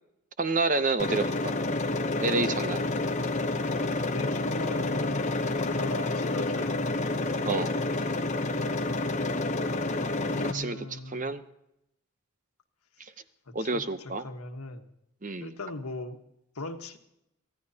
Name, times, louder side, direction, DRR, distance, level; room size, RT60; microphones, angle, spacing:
voice 1, 0.4-1.6 2.2-2.8 7.4-7.7 10.5-11.4 13.5-14.2 15.2-15.5, right 3 dB, 35° right, 11 dB, 0.7 m, -29 dB
sound 1, 1.0-10.5, left 2 dB, 30° left, 0.8 m, -29 dB
voice 2, 4.0-6.9 10.2-11.3 13.5-14.8 15.4-16.2 16.5-17.0, left 2 dB, 85° left, 5 dB, 1.5 m, -38 dB
24.0 x 15.0 x 2.9 m, 0.83 s
head